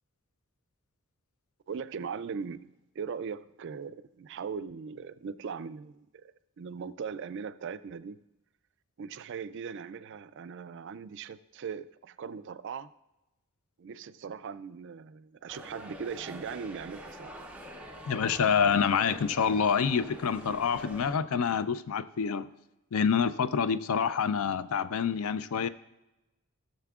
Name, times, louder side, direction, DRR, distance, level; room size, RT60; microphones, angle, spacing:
voice 1, 1.7-8.2 9.0-12.9 13.8-17.3, right 6 dB, 55° right, 0.3 m, -39 dB
sound 1, 15.5-21.1, equal, 5° right, 0.6 m, -46 dB
voice 2, 18.1-22.5 22.9-25.7, left 6 dB, 75° left, 0.4 m, -27 dB
16.5 x 6.7 x 2.4 m
head